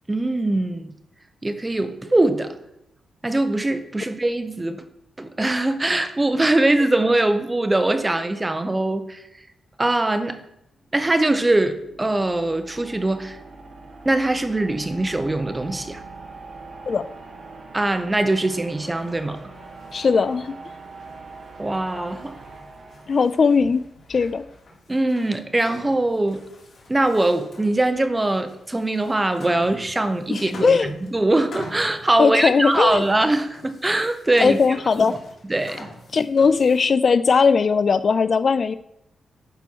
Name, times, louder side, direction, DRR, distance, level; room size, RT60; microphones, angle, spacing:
voice 1, 0.1-0.9 1.4-2.6 3.2-4.8 5.2-9.4 9.8-10.4 10.9-13.4 14.0-16.0 17.7-19.4 21.6-22.4 24.9-26.4 26.9-34.6 35.0-35.2 35.5-35.9, right 2 dB, 15° right, 9 dB, 0.8 m, -22 dB
sound 1, 10.7-23.8, right 3 dB, 45° right, 1.4 m, -43 dB
sound 2, 18.8-37.0, left 2 dB, 60° left, 4.0 m, -46 dB
voice 2, 19.9-20.6 23.1-23.8 24.1-24.4 30.3-30.9 32.2-33.0 34.4-35.1 36.1-38.7, left 5 dB, 45° left, 14 dB, 0.3 m, -19 dB
10.5 x 4.4 x 6.1 m, 0.82 s
cardioid pair, 120°, 0 cm